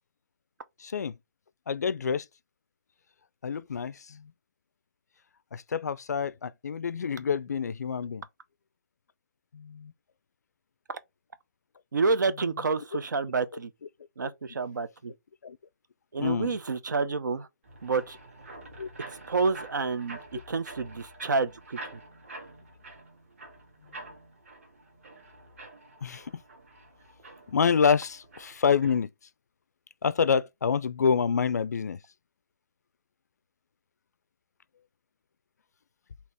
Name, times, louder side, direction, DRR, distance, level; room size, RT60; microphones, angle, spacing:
voice 1, 0.8-1.1 1.7-2.3 3.4-4.3 5.5-8.2 9.5-9.9 15.4-15.6 16.2-16.5 18.8-18.9 26.0-26.3 27.5-29.1 30.0-32.0, left 6 dB, 65° left, 0.4 m, -27 dB
voice 2, 11.9-13.7 14.2-15.1 16.1-17.5 17.8-18.2 19.3-22.0, right 4 dB, 80° right, 0.8 m, -29 dB
sound 1, 17.6-29.0, right 2 dB, 45° right, 1.7 m, -47 dB
4.2 x 2.8 x 3.3 m
hypercardioid pair, 175°, 10 cm